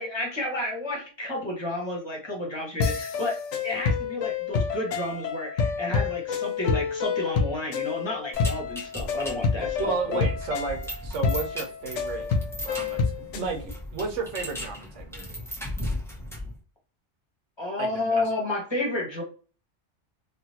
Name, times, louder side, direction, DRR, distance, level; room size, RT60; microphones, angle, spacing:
voice 1, 0.0-3.4 3.6-10.2 17.6-19.2, left 2 dB, 25° left, -1 dB, 1.1 m, -31 dB
sound 1, 2.8-13.5, left 5 dB, 85° left, 1.0 m, -28 dB
sound 2, 8.3-16.6, left 1 dB, 5° left, 0.6 m, -37 dB
voice 2, 9.8-12.3 12.6-15.4 17.8-18.5, right 4 dB, 85° right, 4 dB, 1.2 m, -33 dB
3.1 x 2.6 x 2.7 m, 0.37 s
omnidirectional pair, 1.2 m